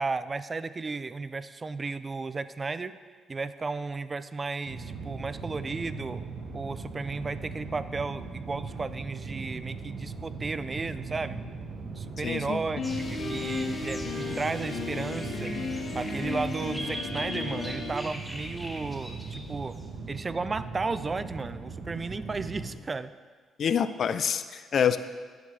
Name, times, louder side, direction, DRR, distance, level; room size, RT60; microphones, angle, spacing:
voice 1, 0.0-3.0 3.3-6.2 6.5-11.4 11.8-15.5 15.9-19.8 20.1-23.1, right 4 dB, 30° right, 14 dB, 0.3 m, -34 dB
sound 1, 4.6-22.7, right 4 dB, 65° right, 1.3 m, -39 dB
voice 2, 12.2-12.6 23.6-25.0, left 8 dB, 55° left, 12 dB, 0.4 m, -26 dB
Piano, 12.8-17.9, left 3 dB, 85° left, 1.5 m, -34 dB
sound 2, 12.8-19.8, equal, ahead, 0.9 m, -42 dB
10.5 x 6.6 x 3.3 m, 1.5 s
cardioid pair, 90°, 0 cm